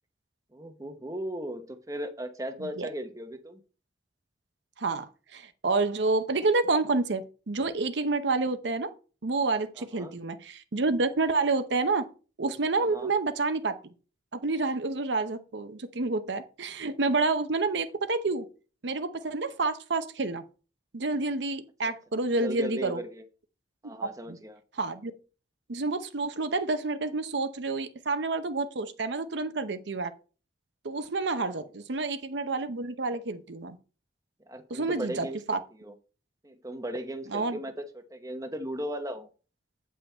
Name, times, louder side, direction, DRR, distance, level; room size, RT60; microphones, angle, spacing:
voice 1, 0.5-3.6 9.8-10.1 12.8-13.1 21.8-21.9 22.4-23.2 23.8-24.6 34.5-35.9 36.4-39.3, right 1 dB, 20° right, 0.9 m, -37 dB
voice 2, 4.8-8.9 9.2-12.1 12.4-13.8 14.4-18.5 18.8-20.4 20.9-23.0 24.0-24.4 24.7-25.1 25.7-30.1 30.8-33.8 34.7-35.6 37.3-37.6, right 3 dB, 70° right, 0.8 m, -29 dB
8.8 x 5.6 x 4.3 m
head